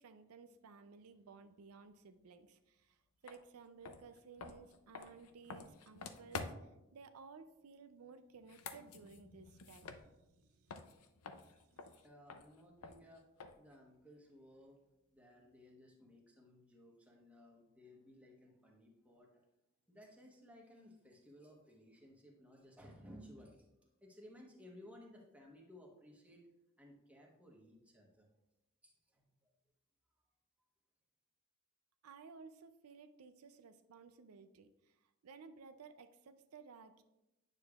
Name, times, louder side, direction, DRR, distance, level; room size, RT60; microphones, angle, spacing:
voice 1, 0.0-6.5 6.9-10.8 11.4-12.0 32.0-35.0 35.2-37.0, right 5 dB, 90° right, 9 dB, 0.5 m, -57 dB
sound 1, 3.3-3.4 3.8-6.8 8.3-10.4 10.7-13.7, left 4 dB, 85° left, 0.5 m, -49 dB
voice 2, 12.0-13.3 13.6-14.8 15.1-19.5 19.9-23.7 24.0-26.5 26.8-28.3 28.8-29.5, equal, 5° right, -1 dB, 1.1 m, -59 dB
9.1 x 6.7 x 2.4 m, 0.93 s
head